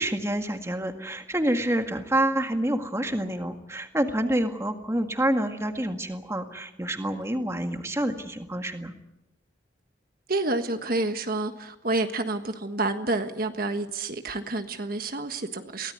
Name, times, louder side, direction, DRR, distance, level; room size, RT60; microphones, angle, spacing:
voice 1, 0.0-8.9, right 1 dB, 15° right, 1.8 m, -27 dB
voice 2, 10.3-15.9, right 2 dB, 50° right, 1.5 m, -29 dB
24.0 x 17.5 x 9.5 m
head